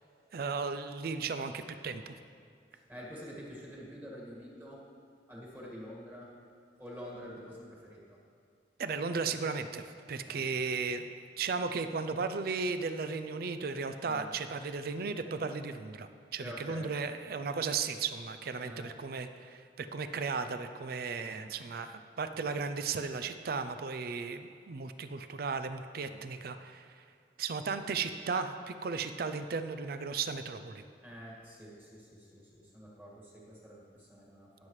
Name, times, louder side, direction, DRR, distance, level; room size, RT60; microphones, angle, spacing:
voice 1, 0.3-2.1 8.8-11.1 11.4-26.9 27.4-30.8, right 5 dB, 55° right, 9 dB, 0.4 m, -35 dB
voice 2, 2.7-4.8 5.3-6.3 6.8-8.2 10.2-10.5 14.1-14.3 16.4-16.9 18.6-18.9 21.2-21.4 22.3-22.4 26.0-26.2 31.0-34.7, equal, 10° right, -4 dB, 1.8 m, -47 dB
17.0 x 7.3 x 3.2 m, 2.3 s
head